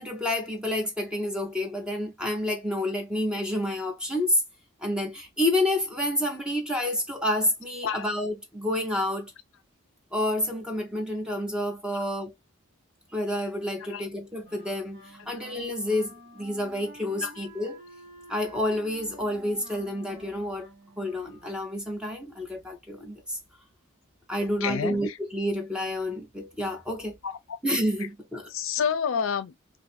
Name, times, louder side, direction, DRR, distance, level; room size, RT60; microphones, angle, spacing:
voice 1, 0.0-4.4 4.8-9.3 10.1-12.3 13.1-17.8 18.3-20.7 21.0-23.4 24.3-27.2 27.6-28.5, left 1 dB, 5° right, 0.7 m, -29 dB
Wind instrument woodwind instrument, 14.4-21.8, right 1 dB, 50° right, 1.3 m, -50 dB
voice 2, 24.4-25.2 27.2-27.6 28.5-29.5, left 7 dB, 80° left, 0.4 m, -29 dB
2.6 x 2.5 x 3.9 m
head